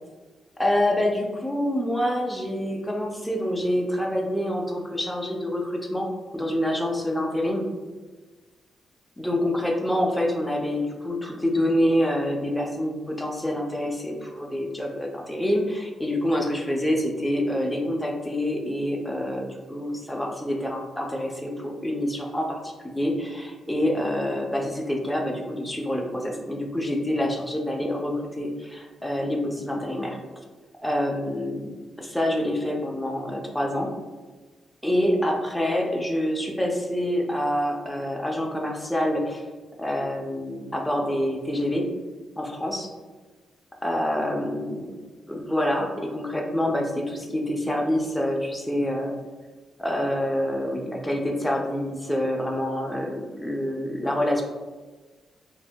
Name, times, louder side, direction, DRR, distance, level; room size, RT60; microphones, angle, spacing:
voice 1, 0.6-6.1 6.3-7.6 9.2-30.2 30.8-33.9 34.8-39.4 39.8-41.9 42.4-42.9 43.8-44.9 45.3-49.1 49.8-54.4, left 1 dB, 5° left, 0 dB, 0.3 m, -26 dB
2.6 x 2.1 x 2.6 m, 1.3 s
wide cardioid pair, 155°, 0 cm